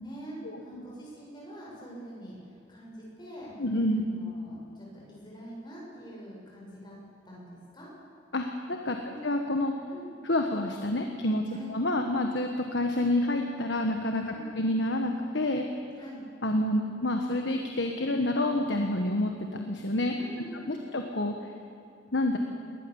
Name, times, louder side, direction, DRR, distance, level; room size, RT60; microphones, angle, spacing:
voice 1, 0.0-2.4 2.7-3.5 3.9-7.0 7.2-7.9 9.0-9.2 9.9-10.1 11.5-11.7 14.3-14.5 16.0-16.2 20.2-20.9, right 1 dB, 25° left, -5 dB, 7.4 m, -45 dB
voice 2, 3.6-4.0 8.3-9.0 9.2-9.7 10.2-15.7 16.4-20.1 20.7-21.3 22.1-22.4, left 1 dB, 60° left, 4 dB, 1.5 m, -28 dB
21.0 x 19.5 x 7.2 m, 2.7 s
head